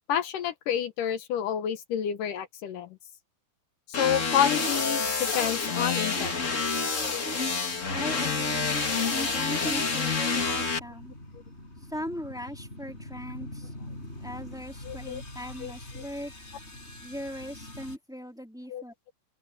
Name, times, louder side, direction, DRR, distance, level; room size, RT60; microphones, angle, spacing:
voice 1, 0.1-2.9 3.9-6.6 14.9-15.2 15.6-15.7 18.7-18.8, left 9 dB, 70° left, 2.3 m, -29 dB
sound 1, 3.9-10.8, left 4 dB, 40° left, 1.1 m, -28 dB
sound 2, 7.7-18.0, left 1 dB, 15° left, 7.7 m, -45 dB
voice 2, 7.9-8.8 9.1-11.1 11.8-13.7 14.2-16.3 17.0-19.1, equal, ahead, 2.5 m, -39 dB
open air
omnidirectional pair, 4.7 m